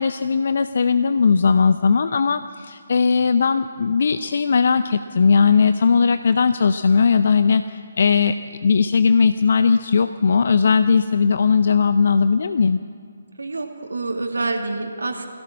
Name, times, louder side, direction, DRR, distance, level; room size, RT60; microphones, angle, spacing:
voice 1, 0.0-8.4 8.6-12.8, left 5 dB, 50° left, 11 dB, 0.6 m, -18 dB
voice 2, 13.4-15.3, right 3 dB, 65° right, 3 dB, 2.5 m, -27 dB
22.0 x 16.5 x 7.4 m, 2.2 s
figure-of-eight pair, 140°, 0 cm